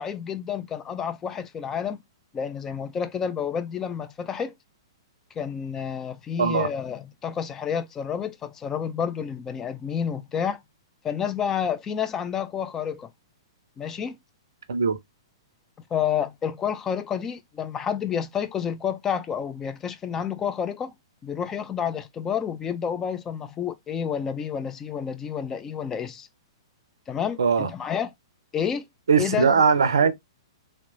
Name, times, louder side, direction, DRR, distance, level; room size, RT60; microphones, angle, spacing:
voice 1, 0.0-2.0 2.3-4.5 5.4-10.6 11.0-13.1 13.8-14.2 15.9-20.9 21.2-26.3 27.1-28.1 28.5-28.9 29.2-29.6, left 8 dB, 15° left, 0.3 m, -29 dB
voice 2, 6.4-6.7 14.7-15.0 27.4-27.7 29.1-30.1, right 5 dB, 65° right, 0.4 m, -20 dB
2.8 x 2.1 x 2.6 m
figure-of-eight pair, 110°, 2 cm